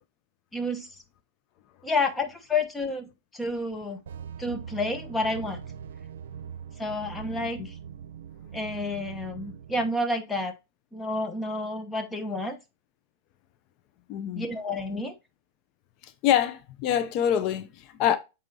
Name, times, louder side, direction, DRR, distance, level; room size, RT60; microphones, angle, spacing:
voice 1, 0.5-0.9 1.8-4.0 4.4-5.6 6.8-7.7 8.5-10.5 10.9-12.6 14.3-15.1, left 2 dB, 10° left, 1.0 m, -30 dB
sound 1, 4.1-9.9, right 8 dB, 80° right, 0.6 m, -42 dB
voice 2, 14.1-14.5 16.0-18.2, left 10 dB, 45° left, 0.6 m, -25 dB
8.1 x 4.2 x 2.8 m
hypercardioid pair, 135°, 0 cm